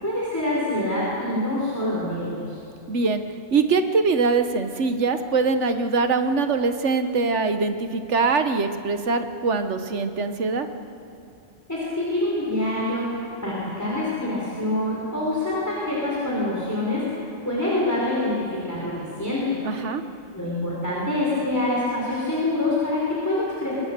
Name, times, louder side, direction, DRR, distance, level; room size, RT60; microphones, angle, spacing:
voice 1, 0.0-2.6 11.7-19.5 20.3-23.7, left 1 dB, 15° left, -6 dB, 4.7 m, -26 dB
voice 2, 2.9-3.2 3.5-10.7 19.6-20.0, right 4 dB, 65° right, 8 dB, 1.5 m, -23 dB
25.0 x 22.5 x 6.8 m, 2.7 s
omnidirectional pair, 1.3 m